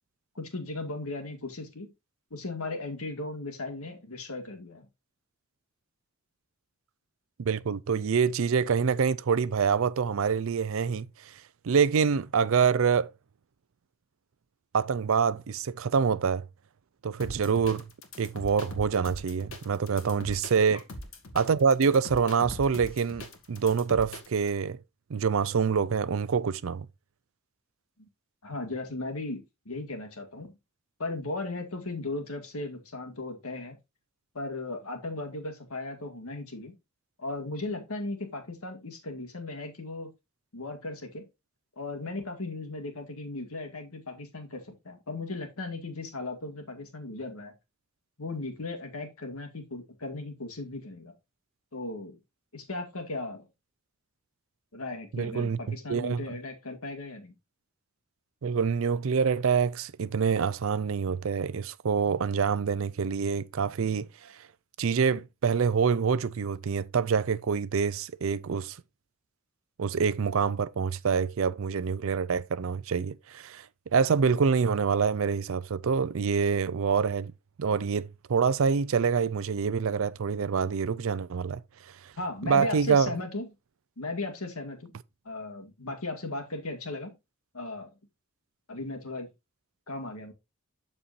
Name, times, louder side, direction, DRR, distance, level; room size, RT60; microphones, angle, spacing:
voice 1, 0.4-1.9 2.3-4.9 20.7-20.8 28.0-28.1 28.4-30.5 31.0-33.8 34.3-36.7 37.2-40.1 40.5-41.2 41.8-47.5 48.2-51.1 51.7-52.2 52.5-53.4 54.7-57.3 82.2-83.5 84.0-84.9 85.3-87.2 87.5-87.9 88.7-89.3 89.9-90.3, left 2 dB, 80° left, 2.0 m, -36 dB
voice 2, 7.4-11.3 11.6-13.1 14.7-16.4 17.0-17.9 18.2-20.8 21.3-24.8 25.1-26.9 55.1-56.3 58.4-64.3 64.8-68.8 69.8-73.7 73.9-77.3 77.6-81.6 82.0-82.1 82.5-83.1, right 6 dB, 65° right, 0.4 m, -26 dB
sound 1, 17.2-24.5, left 1 dB, 65° left, 1.9 m, -42 dB
12.5 x 4.3 x 2.6 m
head